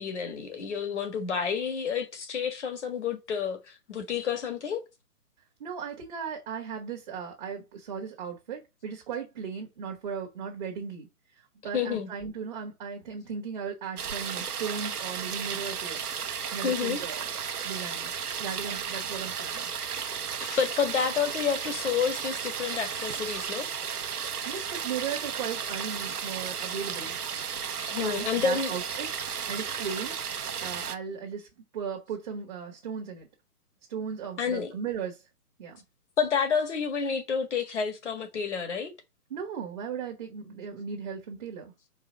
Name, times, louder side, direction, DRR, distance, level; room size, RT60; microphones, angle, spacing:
voice 1, 0.0-4.8 11.7-12.1 16.6-17.0 20.4-23.7 27.9-28.7 34.4-34.7 36.2-38.9, left 6 dB, 45° left, 1.7 m, -29 dB
voice 2, 5.6-11.1 11.6-16.0 16.5-17.3 17.6-18.1 18.4-19.7 24.4-27.2 27.9-31.5 31.7-33.3 33.9-35.2 35.6-35.8 39.3-41.7, right 6 dB, 30° right, 1.5 m, -37 dB
sound 1, 14.0-31.0, right 7 dB, 70° right, 1.1 m, -34 dB
5.0 x 3.7 x 5.7 m
hypercardioid pair, 165°, 46 cm